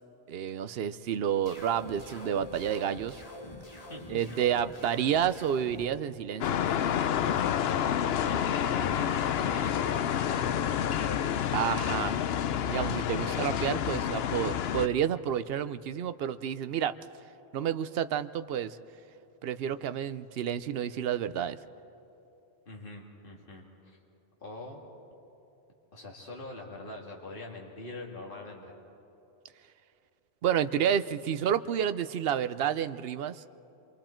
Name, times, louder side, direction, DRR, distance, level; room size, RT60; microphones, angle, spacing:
voice 1, 0.3-3.2 4.1-6.6 11.5-12.2 12.7-17.0 17.5-18.8 19.4-21.6 30.4-33.4, right 9 dB, 70° right, 12 dB, 0.9 m, -30 dB
sound 1, 1.5-5.8, left 1 dB, 35° left, 1.8 m, -45 dB
voice 2, 3.9-4.4 8.2-11.8 13.2-13.5 22.7-24.0 24.4-24.8 25.9-28.7, left 2 dB, 55° left, -1 dB, 2.4 m, -43 dB
sound 2, 6.4-14.9, left 9 dB, 75° left, 0.8 m, -29 dB
27.5 x 24.5 x 4.4 m, 2.9 s
omnidirectional pair, 1.1 m